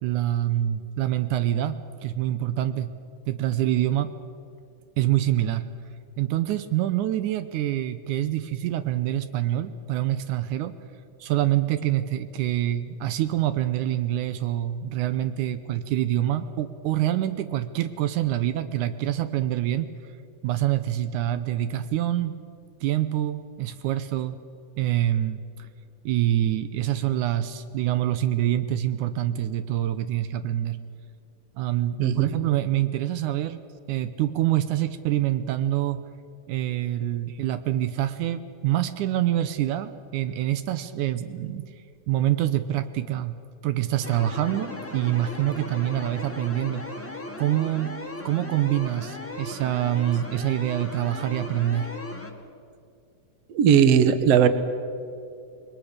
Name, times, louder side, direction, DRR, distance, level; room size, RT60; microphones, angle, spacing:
voice 1, 0.0-2.9 3.3-4.1 5.0-5.7 6.2-10.8 11.2-19.9 20.4-22.4 22.8-24.4 24.8-25.7 26.1-30.8 31.6-33.6 33.9-36.0 36.5-41.7 42.1-43.4 43.6-47.1 47.4-48.0 48.3-51.9, right 12 dB, 80° right, 11 dB, 2.2 m, -26 dB
voice 2, 32.0-32.3 53.5-54.5, right 8 dB, 60° right, 11 dB, 2.0 m, -18 dB
sound 1, 44.0-52.3, left 2 dB, 10° left, 0.9 m, -37 dB
27.5 x 21.5 x 6.6 m, 2.4 s
omnidirectional pair, 3.6 m